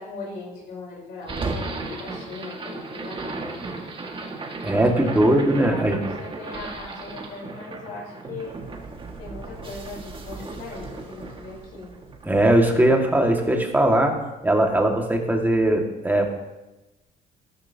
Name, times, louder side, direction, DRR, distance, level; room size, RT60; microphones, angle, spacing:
voice 1, 0.0-3.6 4.8-8.6 9.2-12.0, left 3 dB, 80° left, -4 dB, 4.0 m, -39 dB
sound 1, 1.2-13.4, right 3 dB, 30° right, 1.8 m, -35 dB
voice 2, 4.6-6.0 12.3-14.2 14.4-16.3, right 1 dB, 10° right, 2 dB, 1.8 m, -20 dB
13.5 x 13.0 x 2.8 m, 1.0 s
cardioid pair, 110°, 17 cm